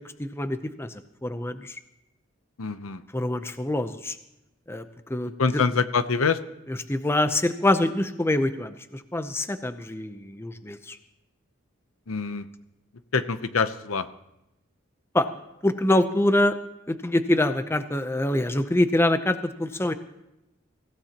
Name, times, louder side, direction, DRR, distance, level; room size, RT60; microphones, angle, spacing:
voice 1, 0.2-1.8 3.1-4.2 4.7-5.3 6.9-11.0 15.1-15.3 15.6-16.6 16.9-19.9, left 1 dB, 10° left, 10 dB, 0.6 m, -25 dB
voice 2, 2.6-3.0 5.4-6.4 12.1-12.5 13.1-14.1, left 5 dB, 85° left, 12 dB, 0.8 m, -25 dB
24.5 x 16.0 x 2.9 m, 0.89 s
head